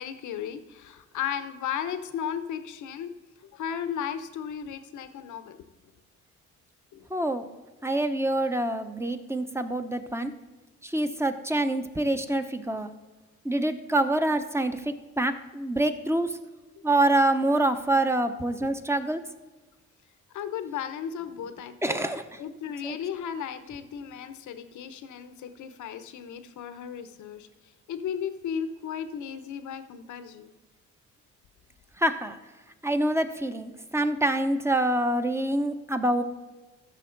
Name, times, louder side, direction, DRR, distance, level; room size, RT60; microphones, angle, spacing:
voice 1, 0.0-3.1 3.4-5.6 6.9-7.1 16.8-16.9 20.3-22.1 22.4-27.5 27.9-30.5, left 8 dB, 75° left, 10 dB, 1.0 m, -35 dB
voice 2, 7.1-7.5 7.8-10.3 10.8-12.9 13.4-16.3 16.8-19.2 21.8-22.2 22.8-23.0 32.0-32.3 32.8-36.2, right 1 dB, 10° right, 8 dB, 0.9 m, -26 dB
14.5 x 6.5 x 3.9 m, 1.2 s
cardioid pair, 90°, 30 cm